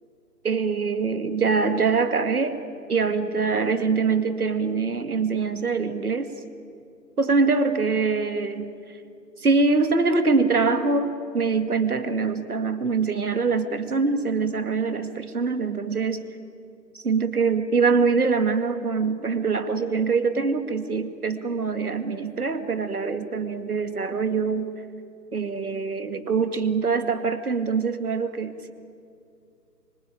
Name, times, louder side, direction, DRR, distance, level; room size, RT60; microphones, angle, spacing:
voice 1, 0.4-2.6 2.9-6.3 7.2-8.7 9.4-11.1 11.3-16.2 16.9-24.7 25.3-28.7, right 4 dB, 60° right, 9 dB, 2.3 m, -24 dB
26.0 x 23.5 x 9.1 m, 2.4 s
figure-of-eight pair, 155°, 49 cm